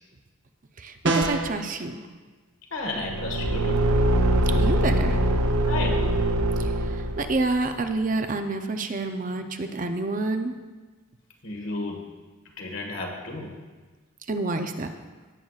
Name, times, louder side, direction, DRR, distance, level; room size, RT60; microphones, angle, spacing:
voice 1, 0.8-2.1 4.6-5.2 6.6-10.5 14.3-14.9, right 2 dB, 35° right, 6 dB, 0.6 m, -28 dB
sound 1, 1.0-1.6, right 2 dB, 55° right, 1.0 m, -23 dB
voice 2, 2.7-3.9 5.7-6.2 11.4-12.1 12.6-13.6, left 2 dB, 65° left, 1 dB, 1.6 m, -33 dB
Car / Engine, 2.9-7.5, right 1 dB, 80° right, 0.7 m, -23 dB
17.5 x 7.8 x 2.4 m, 1.3 s
head